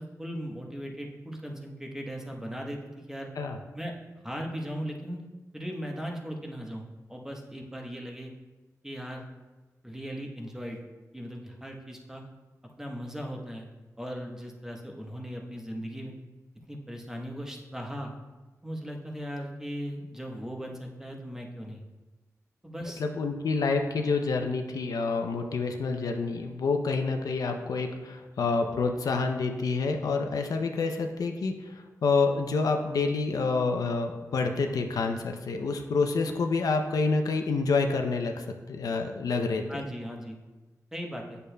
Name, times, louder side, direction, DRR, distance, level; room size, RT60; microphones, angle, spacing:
voice 1, 0.0-3.3 3.7-3.9 4.2-5.2 5.5-8.3 8.8-9.2 9.8-10.8 11.1-12.2 12.6-13.7 14.0-16.1 16.7-18.1 18.6-21.8 22.6-23.0 39.7-40.4 40.9-41.4, equal, 10° right, 1 dB, 1.0 m, -38 dB
voice 2, 23.0-39.8, left 4 dB, 85° left, 4 dB, 0.5 m, -28 dB
8.4 x 6.7 x 2.2 m, 1.2 s
cardioid pair, 65°, 6 cm